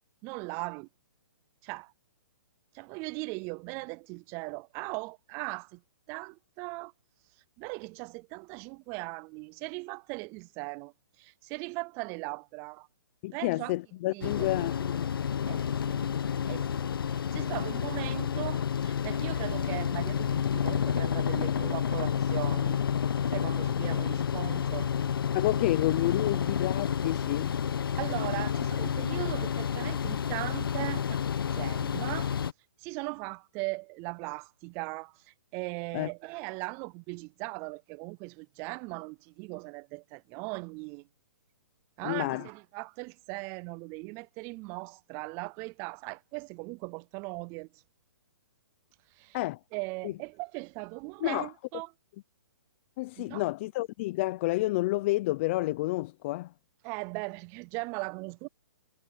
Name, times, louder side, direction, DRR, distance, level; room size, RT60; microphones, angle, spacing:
voice 1, 0.2-0.9 1.6-1.9 2.7-5.8 6.1-6.9 7.6-12.9 13.3-13.7 14.1-14.7 15.5-16.0 16.5-22.8 23.3-24.9 28.0-31.2 31.5-32.4 32.8-41.1 42.0-47.7 49.1-49.4 49.7-51.9 53.2-53.4 56.8-58.5, right 28 dB, 20° right, 0.4 m, -39 dB
voice 2, 13.2-15.2 25.3-27.6 35.9-36.1 42.0-42.5 49.3-49.6 50.0-50.1 51.2-51.5 53.0-56.5, left 19 dB, 35° left, 0.7 m, -30 dB
sound 1, 14.2-32.5, left 8 dB, 75° left, 1.0 m, -30 dB
hypercardioid pair, 150°, 12 cm